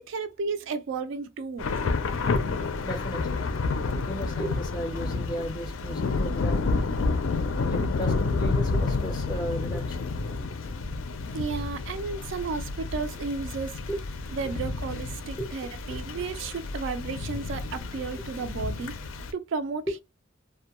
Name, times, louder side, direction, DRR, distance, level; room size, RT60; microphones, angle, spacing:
voice 1, 0.0-1.8 11.3-13.8 14.3-19.0 19.3-20.0, right 4 dB, 65° right, 0.3 m, -33 dB
Thunder / Rain, 1.6-19.3, left 3 dB, 85° left, 0.4 m, -30 dB
voice 2, 2.8-3.5 4.1-6.7 7.3-10.1 13.9-14.0 15.4-15.5 15.9-16.0, equal, 20° left, 0.5 m, -35 dB
2.2 x 2.1 x 2.8 m
head